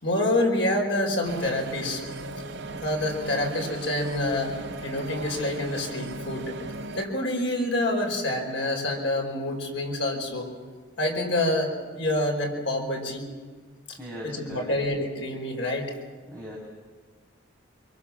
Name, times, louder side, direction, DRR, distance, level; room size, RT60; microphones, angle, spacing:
voice 1, 0.0-2.0 2.8-4.5 4.8-6.5 6.9-10.5 11.0-13.2 13.9-14.0 14.2-15.9, left 1 dB, 75° left, 1 dB, 5.1 m, -27 dB
sound 1, 1.2-7.1, right 2 dB, 75° right, 3.7 m, -37 dB
voice 2, 14.0-14.7 16.3-16.6, left 1 dB, 10° left, -4 dB, 5.5 m, -39 dB
26.5 x 24.5 x 7.4 m, 1.4 s
head